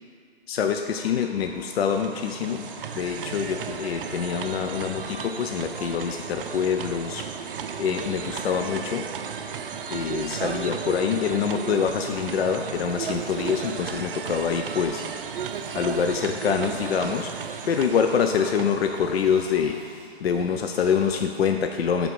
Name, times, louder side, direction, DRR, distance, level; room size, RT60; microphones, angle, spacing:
voice 1, 0.5-2.7 3.0-7.3 7.8-9.1 9.9-15.4 15.7-19.9 20.2-22.1, left 7 dB, 70° left, 5 dB, 0.6 m, -25 dB
sound 1, 0.9-19.8, left 2 dB, 45° left, 1.3 m, -48 dB
sound 2, 1.5-19.5, right 7 dB, 60° right, 0.5 m, -35 dB
sound 3, 11.2-21.5, right 2 dB, 25° right, 1.6 m, -52 dB
8.6 x 3.7 x 4.6 m, 2.1 s
hypercardioid pair, 150°, 32 cm